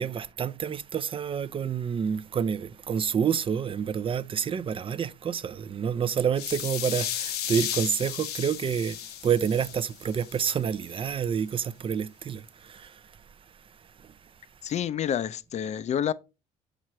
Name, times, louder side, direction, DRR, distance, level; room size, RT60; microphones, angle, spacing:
voice 1, 0.0-13.2 14.0-14.1, right 7 dB, 30° right, 0.4 m, -28 dB
sound 1, 6.4-10.4, left 11 dB, 70° left, 0.8 m, -34 dB
voice 2, 14.6-16.1, left 9 dB, 40° left, 0.5 m, -28 dB
6.4 x 6.0 x 3.0 m
cardioid pair, 110°, 17 cm